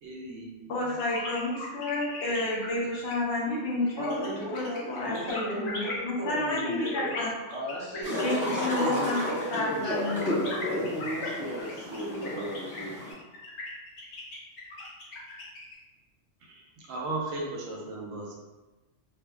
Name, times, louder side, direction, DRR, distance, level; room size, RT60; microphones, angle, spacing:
voice 1, 0.0-0.5 16.5-18.3, right 2 dB, 85° right, -2 dB, 1.0 m, -36 dB
voice 2, 0.7-7.3 8.2-10.3, left 2 dB, 65° left, -3 dB, 0.9 m, -31 dB
sound 1, 0.9-15.8, left 2 dB, 85° left, 1.2 m, -39 dB
voice 3, 4.0-7.2 7.5-12.9, equal, 40° right, -9 dB, 0.4 m, -35 dB
sound 2, 8.0-13.1, equal, 5° right, 1.2 m, -33 dB
2.6 x 2.4 x 2.3 m, 1.1 s
omnidirectional pair, 1.3 m